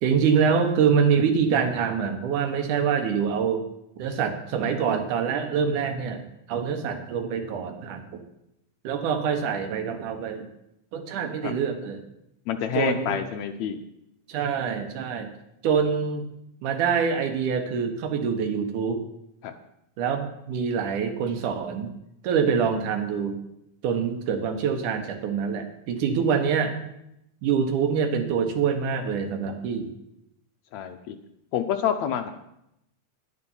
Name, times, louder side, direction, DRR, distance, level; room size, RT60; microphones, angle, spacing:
voice 1, 0.0-3.7 4.0-8.2 8.8-10.5 10.9-12.0 12.7-13.2 14.3-15.3 15.6-16.3 16.6-19.0 20.0-21.9 22.2-23.4 23.8-26.7 27.4-29.9, right 6 dB, 80° right, 6 dB, 2.6 m, -25 dB
voice 2, 12.5-13.8 19.4-19.5 30.7-31.2 31.5-32.3, left 8 dB, 75° left, 7 dB, 1.8 m, -27 dB
10.5 x 9.8 x 5.5 m, 0.83 s
omnidirectional pair, 3.6 m